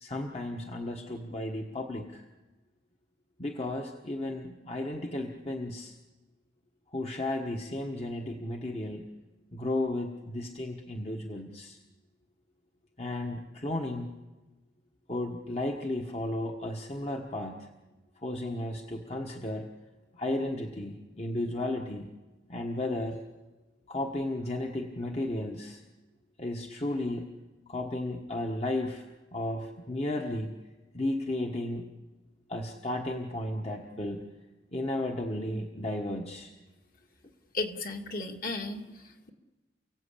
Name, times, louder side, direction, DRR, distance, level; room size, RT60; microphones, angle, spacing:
voice 1, 0.0-2.2 3.4-5.9 6.9-9.1 9.5-11.8 13.0-14.2 15.1-17.7 18.2-19.7 20.1-22.1 22.5-23.2 23.9-25.8 26.4-27.3 27.7-29.1 29.3-30.5 30.9-31.9 32.5-34.2 34.7-36.5, left 1 dB, 35° left, 1 dB, 1.4 m, -34 dB
voice 2, 37.5-39.3, left 3 dB, 50° left, 3 dB, 2.3 m, -35 dB
29.5 x 17.0 x 8.6 m, 1.2 s
head